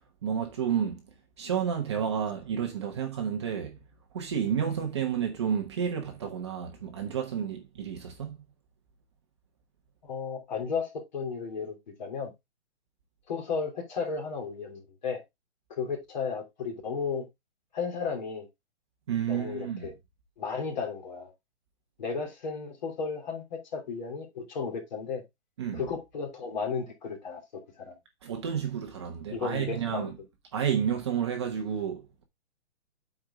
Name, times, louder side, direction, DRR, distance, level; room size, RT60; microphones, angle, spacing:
voice 1, 0.2-1.0 1.4-3.8 4.1-8.3 19.1-19.9 25.6-25.8 28.2-30.1 30.5-32.2, right 8 dB, 25° right, 1.1 m, -30 dB
voice 2, 10.0-12.3 13.3-15.2 15.7-17.2 17.7-18.5 19.3-19.9 20.4-21.3 22.0-25.2 25.7-27.4 27.8-27.9 29.3-30.1, left 5 dB, 40° left, 3.2 m, -34 dB
8.8 x 4.7 x 3.5 m
hypercardioid pair, 175°, 35 cm